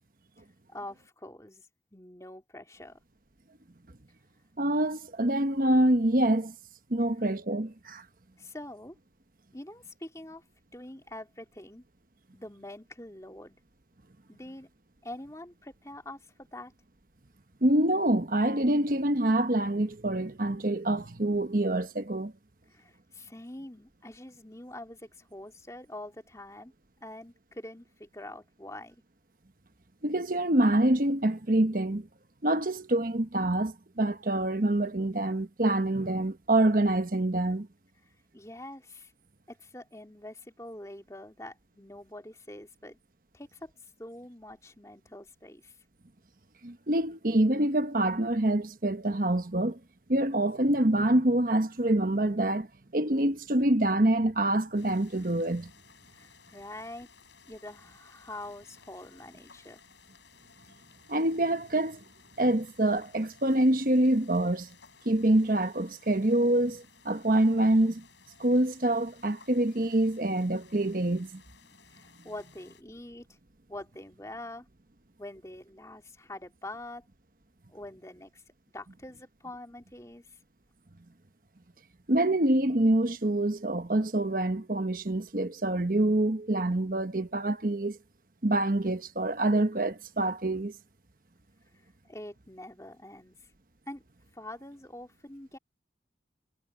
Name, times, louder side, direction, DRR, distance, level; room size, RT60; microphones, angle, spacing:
voice 1, 0.7-3.0 8.4-9.0 9.5-10.4 10.7-11.8 12.3-13.6 14.3-14.7 15.0-16.2 16.5-16.7 22.7-26.7 27.0-29.0 38.3-39.1 39.5-43.0 43.3-43.7 44.0-45.8 56.1-57.1 57.5-59.8 71.9-73.4 73.7-74.7 75.2-77.0 77.7-78.4 78.7-80.4 92.1-93.4 93.9-94.0 94.3-95.6, left 1 dB, 15° left, 2.9 m, -45 dB
voice 2, 4.6-6.5 6.9-8.0 17.6-22.3 30.0-32.1 32.4-37.7 46.6-49.8 50.1-52.7 52.9-55.7 61.1-62.0 62.4-64.7 65.0-68.0 68.4-71.4 82.1-88.0 88.4-90.7, right 1 dB, 50° right, 1.2 m, -26 dB
sound 1, 54.7-72.8, left 6 dB, 85° left, 7.4 m, -58 dB
head